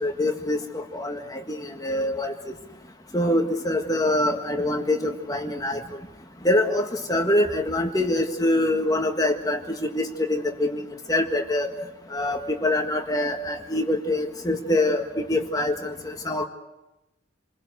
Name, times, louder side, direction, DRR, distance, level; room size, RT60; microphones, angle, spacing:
voice 1, 0.0-2.3 3.1-5.8 6.4-11.7 12.1-16.4, left 1 dB, 20° left, 4 dB, 1.6 m, -25 dB
28.5 x 21.5 x 8.0 m, 0.98 s
head